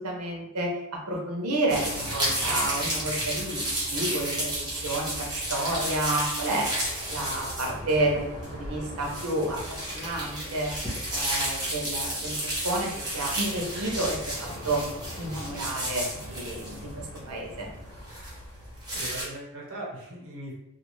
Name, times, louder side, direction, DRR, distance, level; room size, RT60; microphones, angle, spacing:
voice 1, 0.0-6.7 7.1-8.2 8.5-12.4 12.6-14.2 14.4-14.8 15.2-17.7, right 1 dB, 90° right, 0 dB, 0.7 m, -30 dB
sound 1, 1.7-19.2, right 1 dB, 20° right, 0.9 m, -32 dB
voice 2, 18.9-20.5, right 1 dB, 60° right, -4 dB, 1.0 m, -39 dB
2.4 x 2.4 x 3.0 m, 0.87 s
head